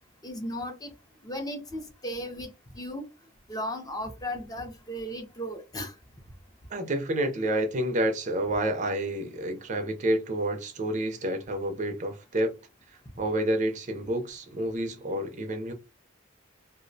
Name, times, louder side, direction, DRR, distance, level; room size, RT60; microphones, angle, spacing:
voice 1, 0.2-0.9 1.2-3.1 3.5-5.9, equal, 20° left, 0.4 m, -36 dB
voice 2, 6.7-12.5 13.2-15.7, right 1 dB, 40° right, 0.4 m, -29 dB
2.4 x 2.0 x 2.6 m
head